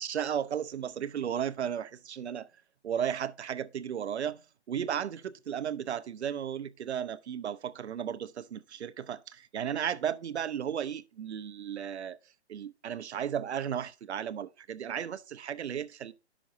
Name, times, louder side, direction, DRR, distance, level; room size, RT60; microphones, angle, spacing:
voice 1, 0.0-2.5 2.8-4.4 4.7-12.2 12.5-16.1, right 9 dB, 75° right, 0.7 m, -34 dB
10.0 x 6.1 x 2.6 m
hypercardioid pair, 160°, 34 cm